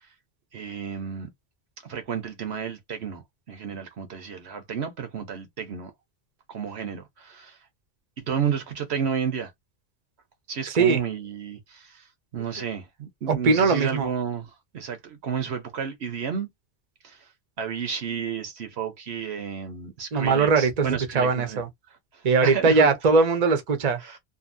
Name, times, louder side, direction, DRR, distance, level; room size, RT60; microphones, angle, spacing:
voice 1, 0.5-1.3 1.9-3.2 3.5-5.9 6.5-7.6 8.3-9.5 10.5-12.1 12.3-16.5 17.0-17.2 17.6-21.6 22.1-22.9 24.0-24.2, right 7 dB, 65° right, 1.1 m, -31 dB
voice 2, 10.7-11.0 13.3-14.1 20.1-21.7 22.2-24.0, right 4 dB, 40° right, 0.8 m, -21 dB
2.7 x 2.6 x 2.5 m
omnidirectional pair, 1.2 m